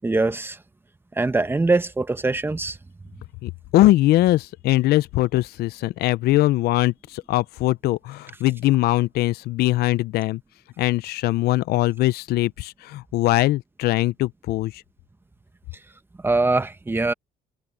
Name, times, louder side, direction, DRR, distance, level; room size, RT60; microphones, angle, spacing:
voice 1, 0.0-0.6 1.2-2.8 16.2-17.1, right 3 dB, 15° right, 1.0 m, -22 dB
voice 2, 3.4-10.4 10.8-14.8, left 16 dB, 70° left, 0.5 m, -21 dB
cardioid pair, 110°, 17 cm